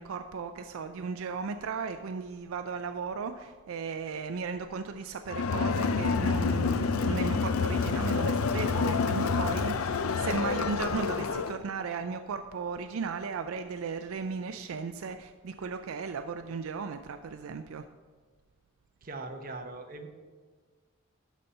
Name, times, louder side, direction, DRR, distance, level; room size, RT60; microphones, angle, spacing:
voice 1, 0.0-17.8, right 5 dB, 75° right, 8 dB, 0.4 m, -36 dB
Crowd, 5.3-11.6, left 5 dB, 85° left, 0.5 m, -28 dB
voice 2, 19.0-20.1, right 2 dB, 40° right, 5 dB, 0.9 m, -40 dB
12.0 x 4.2 x 5.4 m, 1.6 s
head